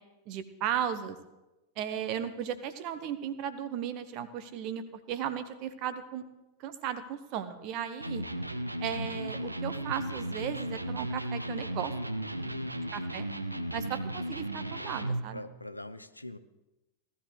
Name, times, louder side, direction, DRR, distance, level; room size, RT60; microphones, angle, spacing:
voice 1, 0.3-1.2 1.8-6.2 6.6-8.2 8.8-11.9 12.9-13.3 13.7-15.4, right 9 dB, 40° right, 12 dB, 1.0 m, -35 dB
Electric guitar, 8.0-15.3, right 1 dB, 85° right, 0.7 m, -35 dB
voice 2, 12.3-12.7 15.3-16.4, left 1 dB, 85° left, 12 dB, 0.6 m, -43 dB
17.5 x 12.5 x 3.3 m, 1.0 s
figure-of-eight pair, 90°, 0 cm